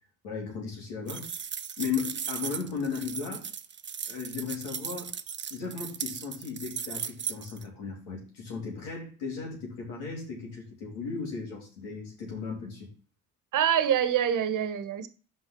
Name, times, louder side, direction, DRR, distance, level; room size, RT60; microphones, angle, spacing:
voice 1, 0.2-1.3 1.8-3.5 4.1-5.1 5.5-12.9, left 5 dB, 90° left, 3.2 m, -36 dB
sound 1, 1.1-7.6, right 7 dB, 35° right, 0.8 m, -37 dB
voice 2, 13.5-15.1, right 9 dB, 65° right, 1.2 m, -25 dB
5.9 x 5.4 x 5.9 m
hypercardioid pair, 55°, 34 cm